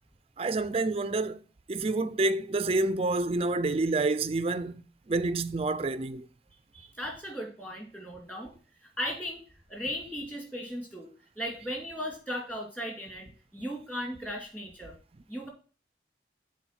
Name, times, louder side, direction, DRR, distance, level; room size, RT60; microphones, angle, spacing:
voice 1, 0.4-1.4 1.7-6.3, right 2 dB, 30° right, 0.4 m, -28 dB
voice 2, 6.7-8.5 8.8-9.4 9.7-11.1 11.4-15.0 15.3-15.5, equal, 10° left, 2.2 m, -37 dB
7.0 x 4.5 x 5.7 m
head